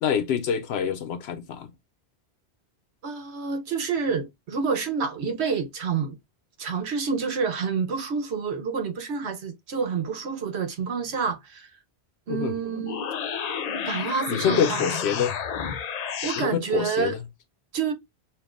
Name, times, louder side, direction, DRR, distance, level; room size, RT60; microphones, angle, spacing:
voice 1, 0.0-1.7 12.3-12.5 14.3-15.3 16.4-17.2, left 8 dB, 85° left, 0.9 m, -26 dB
voice 2, 3.0-6.2 6.6-11.7 12.3-13.0 13.8-15.0 16.2-17.2 17.7-17.9, right 5 dB, 85° right, 1.1 m, -28 dB
sound 1, 12.7-16.5, left 7 dB, 55° left, 0.5 m, -30 dB
6.7 x 2.5 x 2.5 m
omnidirectional pair, 1.1 m